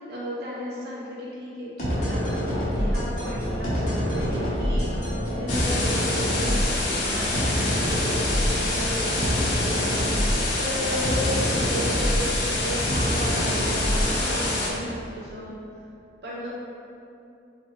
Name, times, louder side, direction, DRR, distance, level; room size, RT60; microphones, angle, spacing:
voice 1, 0.1-15.6 16.2-16.5, equal, 60° right, -6 dB, 0.5 m, -35 dB
sound 1, 1.8-14.7, equal, 40° left, 0.8 m, -26 dB
sound 2, 5.5-14.7, left 2 dB, 75° left, 0.5 m, -28 dB
3.2 x 2.3 x 2.9 m, 2.6 s
head